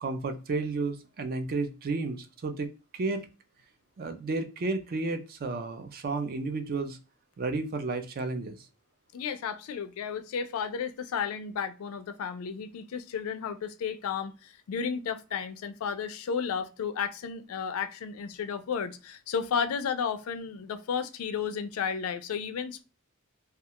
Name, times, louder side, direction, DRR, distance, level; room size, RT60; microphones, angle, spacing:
voice 1, 0.0-3.3 4.0-7.0 7.4-8.6, right 3 dB, 45° right, 0.4 m, -32 dB
voice 2, 9.1-22.8, left 6 dB, 85° left, 0.3 m, -33 dB
2.3 x 2.2 x 2.8 m
head